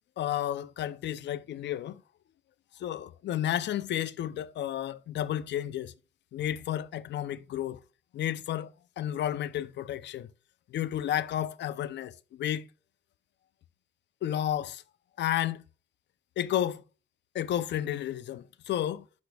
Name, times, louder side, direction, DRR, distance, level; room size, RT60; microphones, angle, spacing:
voice 1, 0.2-2.0 2.8-5.9 6.3-7.8 8.1-10.3 10.7-12.7 14.2-14.8 15.2-15.6 16.4-16.8 17.3-19.1, left 11 dB, 85° left, 0.5 m, -32 dB
10.5 x 5.1 x 2.2 m
wide cardioid pair, 160°, 18 cm